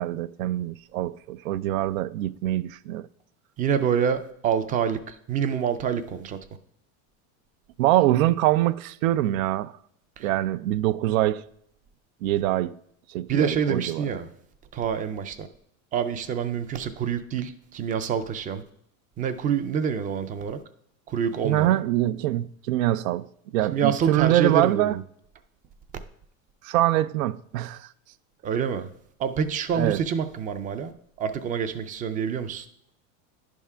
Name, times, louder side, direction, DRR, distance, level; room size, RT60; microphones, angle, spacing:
voice 1, 0.0-3.1 7.8-9.7 10.2-11.4 12.2-12.8 13.1-14.0 21.4-23.3 23.5-25.0 26.6-27.9 29.7-30.0, right 14 dB, 85° right, 0.5 m, -24 dB
voice 2, 3.6-6.4 10.2-10.3 13.3-14.3 14.7-15.5 15.9-18.6 19.2-20.6 21.1-21.8 23.7-25.0 28.4-28.9 29.2-30.9 31.2-32.7, right 7 dB, 20° right, 0.4 m, -27 dB
10.5 x 3.6 x 5.5 m
supercardioid pair, 135°, 40 cm